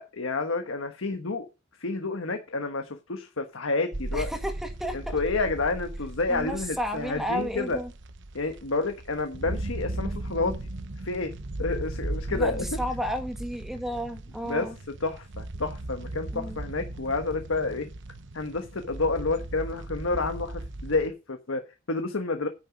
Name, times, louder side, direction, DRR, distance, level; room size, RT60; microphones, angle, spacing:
voice 1, 0.0-1.5 1.8-4.3 4.9-7.8 8.3-10.6 11.0-11.3 11.6-12.6 14.5-14.7 15.0-17.9 18.3-22.5, left 3 dB, 90° left, 1.3 m, -29 dB
sound 1, 3.9-21.1, right 1 dB, 65° right, 1.0 m, -37 dB
voice 2, 4.1-5.2 6.3-7.9 12.3-14.8 16.3-16.6, equal, ahead, 1.8 m, -32 dB
9.9 x 9.0 x 5.1 m
head